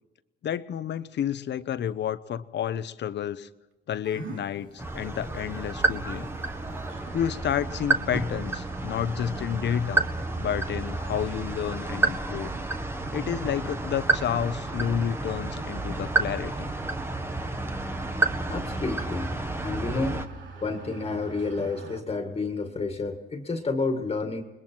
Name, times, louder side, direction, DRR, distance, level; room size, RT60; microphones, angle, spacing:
voice 1, 0.4-3.5 3.9-6.3 7.1-10.1 10.4-12.5 13.1-16.7, left 9 dB, 60° left, 14 dB, 0.9 m, -30 dB
sound 1, 4.0-22.0, right 5 dB, 70° right, 2.8 m, -44 dB
sound 2, 4.8-20.3, right 2 dB, 10° right, 1.5 m, -30 dB
voice 2, 18.5-19.3 19.6-20.2 20.6-24.4, left 3 dB, 30° left, 5 dB, 1.9 m, -30 dB
29.0 x 21.5 x 4.6 m, 1.1 s
cardioid pair, 90°, 20 cm